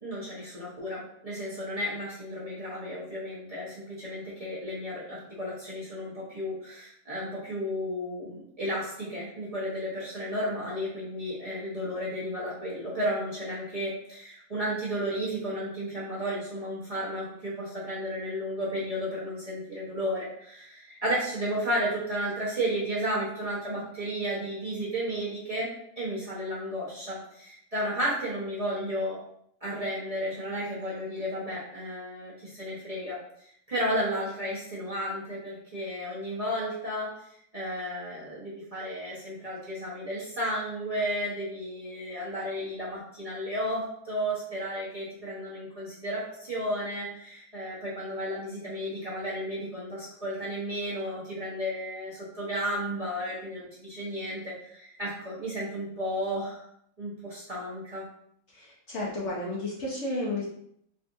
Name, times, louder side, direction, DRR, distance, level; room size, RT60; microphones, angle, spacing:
voice 1, 0.0-25.7 26.0-29.2 29.6-33.2 33.7-37.1 37.5-56.6 57.0-58.0, equal, 30° right, -9 dB, 0.8 m, -33 dB
voice 2, 58.5-60.5, left 2 dB, 60° left, -5 dB, 0.9 m, -32 dB
3.7 x 2.3 x 2.5 m, 0.70 s
omnidirectional pair, 1.6 m